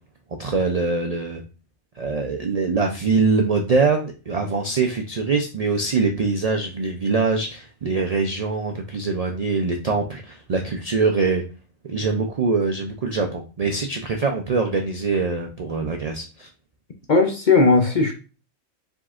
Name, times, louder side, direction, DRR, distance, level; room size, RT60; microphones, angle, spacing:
voice 1, 0.4-1.4 2.0-11.4 11.8-16.5, right 4 dB, 80° right, 3 dB, 0.3 m, -23 dB
voice 2, 17.1-18.1, left 3 dB, 50° left, 3 dB, 0.5 m, -17 dB
4.9 x 3.8 x 2.4 m, 0.34 s
omnidirectional pair, 1.4 m